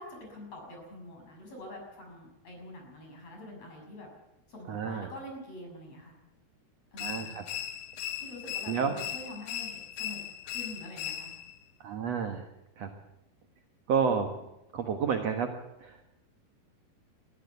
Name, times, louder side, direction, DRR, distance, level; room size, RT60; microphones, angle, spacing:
voice 1, 0.0-4.1 4.5-6.2 6.9-7.4 8.2-11.3 14.0-14.5, left 1 dB, 35° left, 1 dB, 7.3 m, -46 dB
voice 2, 4.7-5.1 7.0-7.4 8.7-8.9 11.8-12.5 12.8-12.9 13.9-14.3 14.7-15.5 15.8-16.1, right 6 dB, 60° right, 5 dB, 1.9 m, -30 dB
sound 1, 7.0-11.6, left 11 dB, 85° left, 3.6 m, -38 dB
22.5 x 15.0 x 8.2 m, 0.91 s
omnidirectional pair, 4.9 m